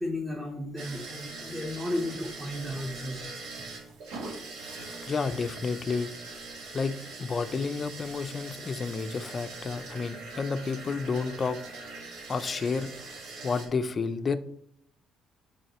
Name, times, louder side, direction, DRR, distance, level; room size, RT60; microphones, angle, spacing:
voice 1, 0.0-3.3, left 1 dB, 10° right, -2 dB, 1.0 m, -34 dB
sound 1, 0.8-13.7, right 3 dB, 85° right, 1.7 m, -42 dB
voice 2, 5.1-6.1 6.7-11.6 12.3-14.4, left 4 dB, 35° left, 11 dB, 0.5 m, -31 dB
7.8 x 4.1 x 3.0 m, 0.68 s
cardioid pair, 100°, 0 cm